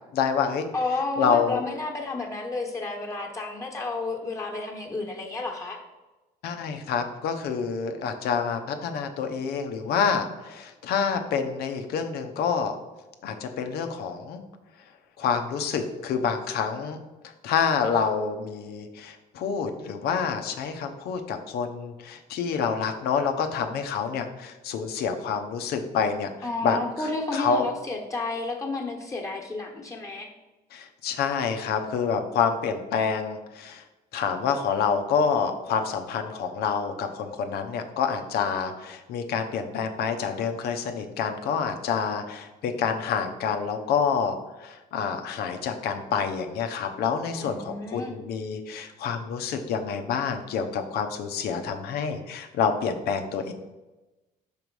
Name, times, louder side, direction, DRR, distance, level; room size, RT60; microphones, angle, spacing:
voice 1, 0.1-0.7 1.2-1.6 6.4-12.7 13.2-14.4 15.2-17.0 17.4-26.3 26.6-26.8 27.3-27.7 30.7-33.8 34.1-53.5, left 6 dB, 80° left, 6 dB, 0.8 m, -27 dB
voice 2, 0.7-5.8 26.4-30.3 47.3-48.1, left 3 dB, 20° left, -1 dB, 1.3 m, -31 dB
5.3 x 4.9 x 4.7 m, 1.1 s
cardioid pair, 90°, 16 cm